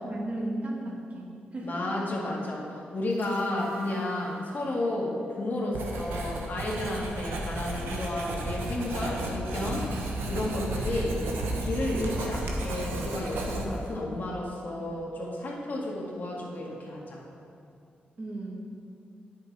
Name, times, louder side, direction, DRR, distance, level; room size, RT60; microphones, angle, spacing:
voice 1, 0.0-1.8 6.9-7.1 18.2-18.6, right 1 dB, 40° right, -3 dB, 2.1 m, -35 dB
voice 2, 1.6-9.9 10.3-11.1 11.6-17.2, left 1 dB, 55° left, -3 dB, 2.0 m, -32 dB
sound 1, 3.1-6.2 6.6-6.7, equal, 70° right, 1.7 m, -46 dB
Writing, 5.7-13.9, right 1 dB, 85° right, 1.1 m, -33 dB
8.8 x 6.6 x 4.8 m, 2.5 s
cardioid pair, 65°, 4 cm